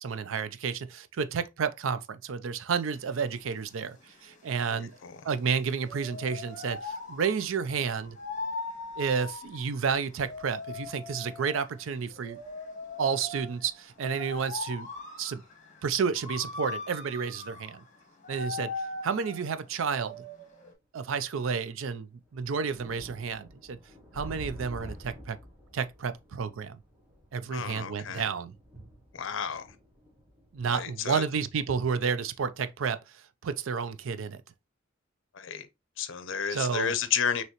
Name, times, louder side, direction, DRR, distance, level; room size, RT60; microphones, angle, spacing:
voice 1, 0.0-4.0 4.2-5.0 5.2-8.2 9.0-12.4 13.0-14.9 15.2-15.4 15.8-17.8 18.3-18.7 19.0-20.2 20.9-23.8 24.1-25.4 25.7-26.8 27.3-28.5 30.5-33.0 33.4-34.4 36.5-36.9, right 6 dB, 75° right, 0.4 m, -31 dB
sound 1, 2.7-20.7, left 3 dB, 40° left, 1.3 m, -41 dB
voice 2, 4.7-5.2 27.5-28.2 29.1-29.7 30.6-31.2 35.3-35.7 36.0-37.4, left 7 dB, 70° left, 0.6 m, -32 dB
sound 2, 22.1-32.2 32.6-32.7, equal, 10° right, 1.5 m, -48 dB
5.5 x 3.0 x 2.9 m
head